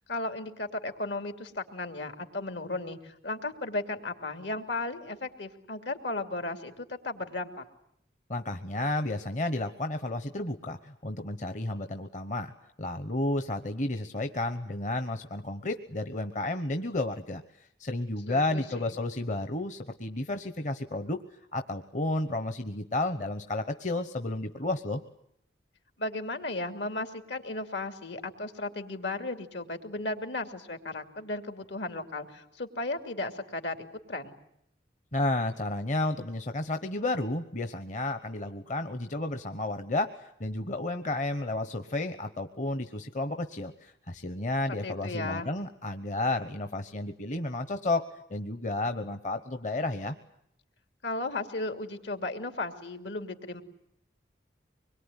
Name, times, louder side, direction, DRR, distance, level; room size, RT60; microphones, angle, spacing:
voice 1, 0.1-7.6 18.3-18.9 26.0-33.8 34.1-34.3 44.8-45.5 51.0-53.6, left 2 dB, 75° left, 7 dB, 2.8 m, -35 dB
voice 2, 8.3-12.5 12.8-21.2 21.5-25.0 35.1-50.1, left 2 dB, 40° left, 8 dB, 1.0 m, -32 dB
25.0 x 22.0 x 9.9 m, 0.75 s
head